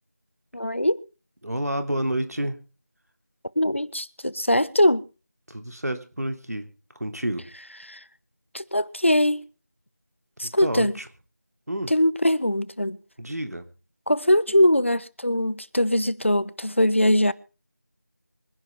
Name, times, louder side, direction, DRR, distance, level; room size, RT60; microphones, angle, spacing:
voice 1, 0.5-1.0 3.6-5.1 7.9-8.0 8.5-9.4 10.4-10.9 11.9-13.0 14.1-17.3, left 1 dB, 45° left, 0.7 m, -21 dB
voice 2, 1.4-2.6 5.5-6.7 6.9-7.5 10.4-11.1 11.7-11.9 13.2-13.7, right 1 dB, 60° right, 3.0 m, -29 dB
25.0 x 10.5 x 3.4 m
figure-of-eight pair, 175°, 10 cm